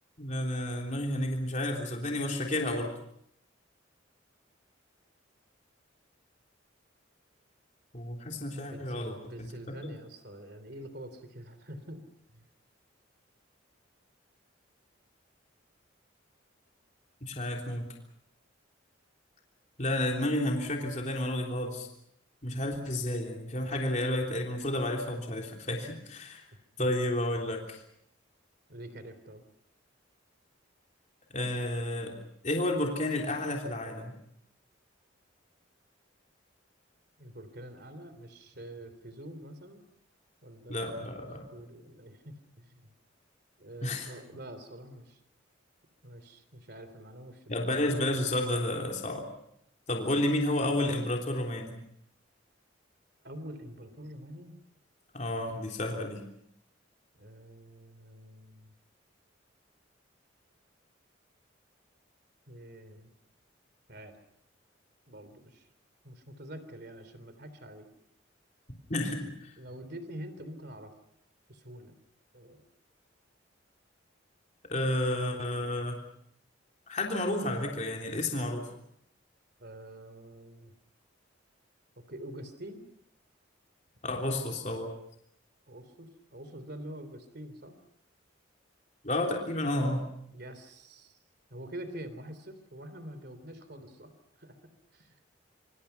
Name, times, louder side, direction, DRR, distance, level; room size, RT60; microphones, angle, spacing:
voice 1, 0.2-2.9 7.9-9.7 17.2-17.9 19.8-21.9 22.4-26.4 26.8-27.8 31.3-32.1 32.4-34.1 40.7-41.5 43.8-44.1 47.5-49.3 49.9-51.8 55.1-56.2 68.9-69.2 74.7-76.0 76.9-78.7 84.0-84.9 89.0-90.0, left 1 dB, 40° left, 1 dB, 3.5 m, -31 dB
voice 2, 8.7-12.0 12.3-12.5 26.8-26.9 28.7-29.4 37.2-39.8 40.4-41.1 41.5-42.9 43.6-45.2 46.0-47.8 53.2-54.6 57.1-58.7 62.5-63.1 63.9-64.1 65.1-65.6 66.0-67.9 69.6-70.9 71.5-71.9 72.3-72.6 79.6-80.7 82.0-82.8 84.3-84.6 85.7-87.8 90.3-91.2 91.5-94.1 94.4-95.1, right 1 dB, 55° right, 11 dB, 3.4 m, -46 dB
26.5 x 26.0 x 5.8 m, 0.71 s
head